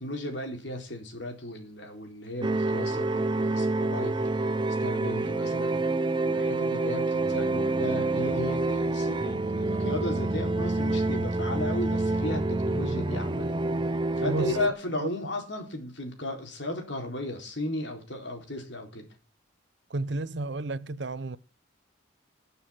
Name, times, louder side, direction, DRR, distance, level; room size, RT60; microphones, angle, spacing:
voice 1, 0.0-4.1 4.8-5.8 6.2-13.6 14.2-19.1, left 1 dB, 65° left, 4.0 m, -35 dB
sound 1, 2.4-14.7, right 2 dB, 25° right, 0.7 m, -27 dB
voice 2, 14.2-14.6 14.9-15.1 19.9-21.4, right 2 dB, 60° right, 0.8 m, -32 dB
20.0 x 7.0 x 5.8 m
head